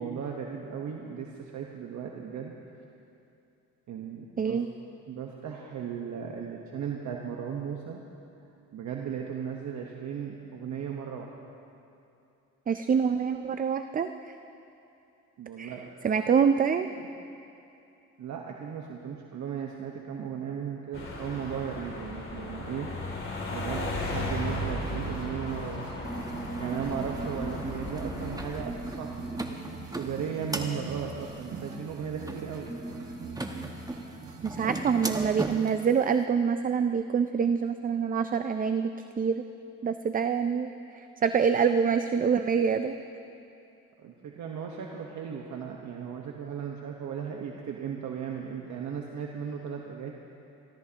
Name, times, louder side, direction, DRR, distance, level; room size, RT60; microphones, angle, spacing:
voice 1, 0.0-2.5 3.9-4.6 5.1-8.0 8.7-11.3 15.4-15.8 17.0-17.1 18.2-22.9 23.5-25.9 26.6-29.3 29.9-32.7 44.0-50.1, right 7 dB, 70° right, 0 dB, 1.2 m, -36 dB
voice 2, 4.4-4.7 12.7-14.1 15.6-15.7 16.0-16.9 34.4-39.4 39.8-43.0, right 6 dB, 30° right, 9 dB, 0.4 m, -26 dB
sound 1, 20.9-28.6, left 2 dB, 40° left, 2.8 m, -35 dB
sound 2, 24.1-34.8, right 5 dB, 85° right, 1.7 m, -44 dB
sound 3, 26.0-35.9, right 2 dB, 10° right, 1.1 m, -37 dB
27.5 x 13.5 x 2.9 m, 2.7 s
cardioid pair, 90°, 30 cm